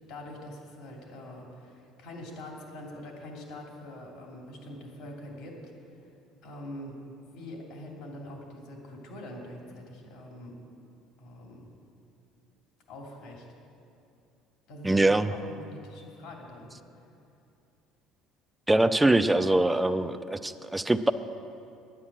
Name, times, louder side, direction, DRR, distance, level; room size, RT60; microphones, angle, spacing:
voice 1, 0.1-5.6 6.4-7.0 7.3-10.6 11.2-11.7 12.9-13.4 14.7-16.7, left 1 dB, 70° left, 0 dB, 2.8 m, -44 dB
voice 2, 14.8-15.3 18.7-21.1, right 2 dB, 10° right, 10 dB, 0.4 m, -23 dB
10.0 x 9.8 x 7.4 m, 2.7 s
cardioid pair, 130°, 0 cm